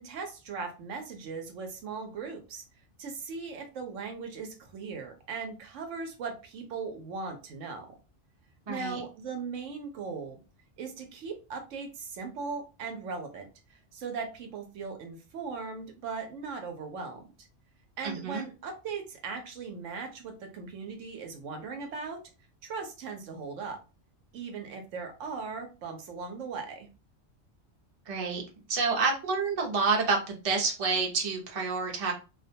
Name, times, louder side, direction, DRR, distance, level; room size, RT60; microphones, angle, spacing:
voice 1, 0.0-2.6 3.0-7.9 8.7-10.4 10.8-17.2 18.0-22.2 22.6-23.8 24.3-26.9, right 5 dB, 80° right, 4 dB, 1.0 m, -38 dB
voice 2, 8.7-9.0 18.0-18.4 28.1-28.4 28.7-32.1, right 4 dB, 35° right, 0 dB, 0.6 m, -28 dB
2.4 x 2.2 x 2.6 m, 0.30 s
omnidirectional pair, 1.3 m